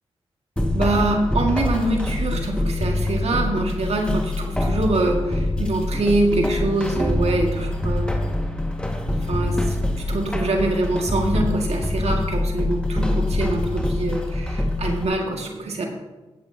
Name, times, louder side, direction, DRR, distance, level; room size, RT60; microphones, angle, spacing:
sound 1, 0.6-15.1, left 1 dB, 10° left, 1.7 m, -24 dB
voice 1, 0.7-8.1 9.3-15.9, right 2 dB, 65° right, 2 dB, 1.9 m, -24 dB
17.0 x 8.0 x 2.8 m, 1.2 s
supercardioid pair, 40°, 11 cm